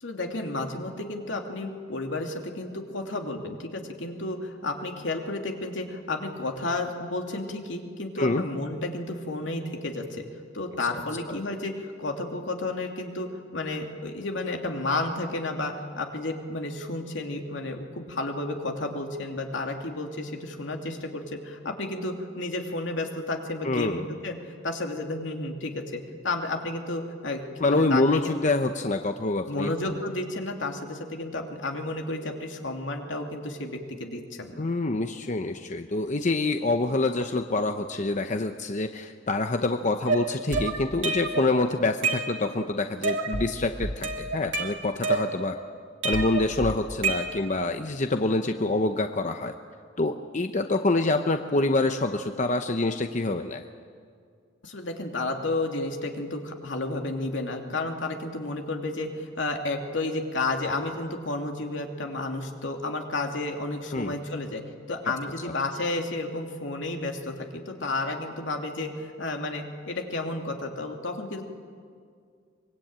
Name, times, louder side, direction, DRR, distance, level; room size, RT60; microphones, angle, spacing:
voice 1, 0.0-10.3 10.5-24.4 24.6-27.4 27.7-28.3 29.5-34.6 54.6-64.6 64.9-71.4, left 2 dB, 80° left, 3 dB, 2.8 m, -32 dB
voice 2, 23.6-24.0 27.6-29.7 34.6-45.5 46.0-49.5 50.0-53.6 63.9-64.1 65.4-65.5, left 2 dB, 40° left, 7 dB, 0.8 m, -26 dB
sound 1, 40.1-41.5 41.8-42.6 43.0-43.5 43.8-45.6 46.0-47.6, right 3 dB, 80° right, 2.7 m, -28 dB
24.5 x 22.0 x 8.9 m, 2.1 s
head